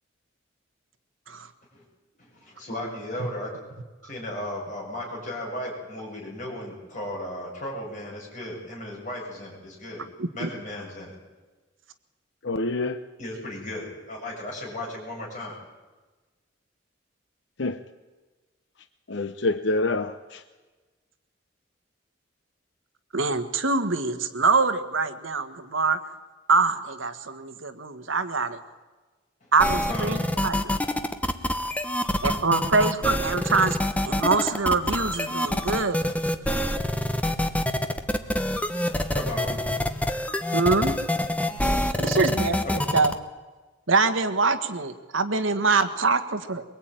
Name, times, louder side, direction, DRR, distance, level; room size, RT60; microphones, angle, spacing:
voice 1, 2.2-3.6 4.0-10.0 10.3-11.2 13.2-15.6 29.4-29.5 29.9-30.1 37.2-38.4 38.7-38.8 39.1-39.6 42.6-42.8, left 1 dB, 40° left, -2 dB, 7.5 m, -36 dB
voice 2, 10.2-10.5 23.1-26.0 26.5-28.6 29.5-30.2 30.4-30.8 32.2-33.8 34.0-36.0 40.5-41.0 42.0-42.6 42.9-43.1 43.9-46.6, right 4 dB, 80° right, 9 dB, 1.6 m, -24 dB
voice 3, 12.4-13.0 17.6-17.8 19.1-20.4, left 2 dB, 65° left, 10 dB, 0.8 m, -26 dB
sound 1, 29.6-43.1, left 1 dB, 5° left, 1.1 m, -26 dB
22.5 x 22.5 x 9.1 m, 1.3 s
head